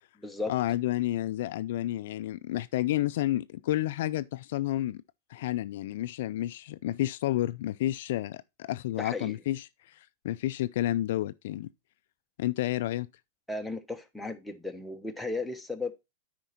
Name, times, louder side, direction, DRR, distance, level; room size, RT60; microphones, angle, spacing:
voice 1, 0.5-5.0 5.3-11.7 12.4-13.1, left 14 dB, 65° left, 0.4 m, -30 dB
voice 2, 9.0-9.3 13.5-15.9, left 3 dB, 5° left, 1.1 m, -35 dB
9.0 x 5.2 x 4.2 m
hypercardioid pair, 115°, 0 cm